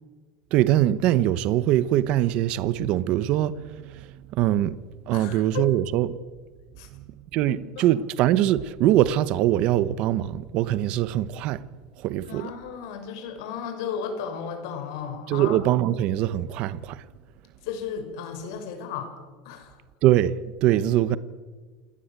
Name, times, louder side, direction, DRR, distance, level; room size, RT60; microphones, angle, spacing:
voice 1, 0.5-4.8 5.1-6.2 6.9-7.0 7.3-11.7 12.0-12.5 15.3-17.0 20.0-21.2, right 13 dB, 40° right, 0.9 m, -23 dB
voice 2, 5.1-5.7 6.8-6.9 7.5-7.9 12.2-15.6 17.6-19.1 19.4-19.8, left 7 dB, 65° left, 5.8 m, -34 dB
27.5 x 18.5 x 9.0 m
supercardioid pair, 175°, 3 cm